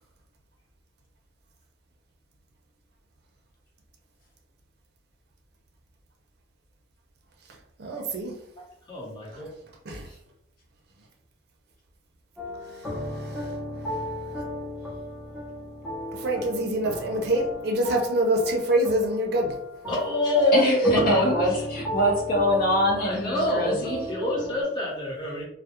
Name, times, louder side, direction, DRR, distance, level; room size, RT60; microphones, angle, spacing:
voice 1, 7.8-8.3 9.9-10.1 13.3-13.5 16.1-19.5, right 1 dB, 55° right, 1 dB, 0.5 m, -25 dB
voice 2, 8.9-9.5 19.9-21.3 23.0-23.8 24.1-25.5, left 1 dB, 25° left, -5 dB, 0.8 m, -25 dB
sound 1, 12.4-24.6, left 1 dB, 5° right, 0.5 m, -36 dB
voice 3, 20.5-24.1, equal, 50° left, -1 dB, 0.7 m, -24 dB
2.2 x 2.0 x 2.8 m, 0.73 s
head